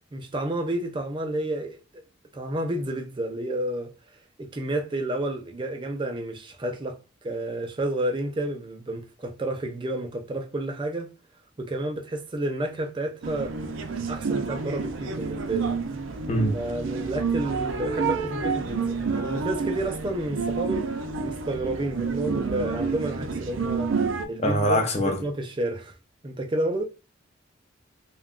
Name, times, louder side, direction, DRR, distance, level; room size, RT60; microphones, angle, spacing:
voice 1, 0.1-2.0 2.3-3.9 4.4-11.1 11.6-13.6 14.1-15.8 16.5-20.9 21.2-23.9 24.3-26.0 26.2-26.8, right 1 dB, 25° right, 0.4 m, -30 dB
sound 1, 13.2-24.2, right 5 dB, 85° right, 0.5 m, -29 dB
voice 2, 24.4-25.2, equal, 35° left, 0.6 m, -23 dB
2.3 x 2.2 x 3.5 m
head